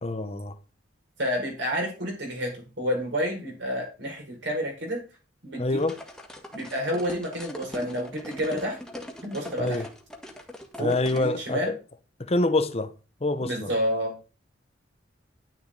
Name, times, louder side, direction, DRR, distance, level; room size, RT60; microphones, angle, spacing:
voice 1, 0.0-0.6 5.6-6.0 9.6-9.9 10.8-11.8 12.2-12.9 13.2-13.7, left 2 dB, 35° left, 0.8 m, -26 dB
voice 2, 1.2-5.0 5.4-5.8 6.5-8.8 9.2-9.8 10.8-11.7 13.4-14.1, equal, 65° right, 5.4 m, -29 dB
sound 1, 5.8-11.3, left 1 dB, 5° left, 1.7 m, -41 dB
11.0 x 9.8 x 4.0 m
head